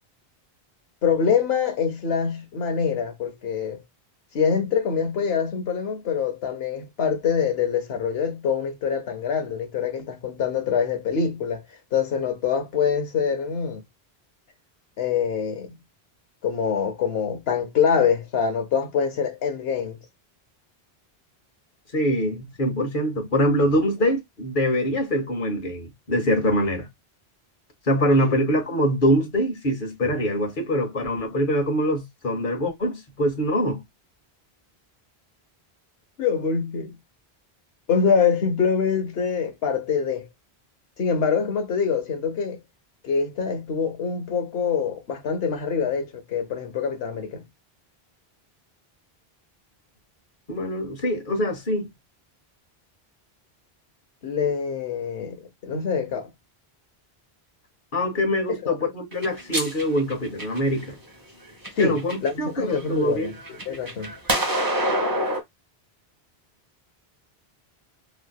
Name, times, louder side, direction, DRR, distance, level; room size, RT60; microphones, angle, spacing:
voice 1, 1.0-3.8 4.3-11.6 11.9-13.8 15.0-15.8 16.4-20.0 28.2-28.3 36.2-36.9 37.9-40.3 41.0-42.6 43.0-47.4 54.2-56.3 58.6-58.8 61.8-63.3 63.7-64.1, left 6 dB, 75° left, 1.1 m, -25 dB
voice 2, 21.9-26.9 27.9-33.8 50.5-51.9 57.9-61.0 61.8-63.3, equal, 55° left, 1.2 m, -24 dB
sound 1, 59.1-60.8 61.4-62.3 62.7-65.4, right 1 dB, 25° right, 0.8 m, -27 dB
3.1 x 2.7 x 2.3 m
omnidirectional pair, 1.0 m